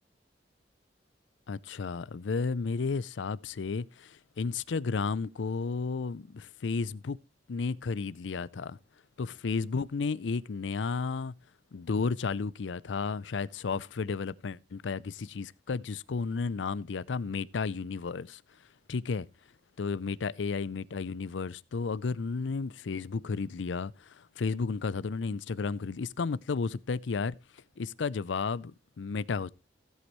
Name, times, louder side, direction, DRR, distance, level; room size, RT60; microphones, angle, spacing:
voice 1, 1.5-7.2 7.5-8.8 9.2-11.3 11.7-18.4 18.9-19.3 19.8-27.3 27.8-29.5, left 4 dB, 80° left, 0.5 m, -33 dB
16.5 x 8.2 x 3.0 m
head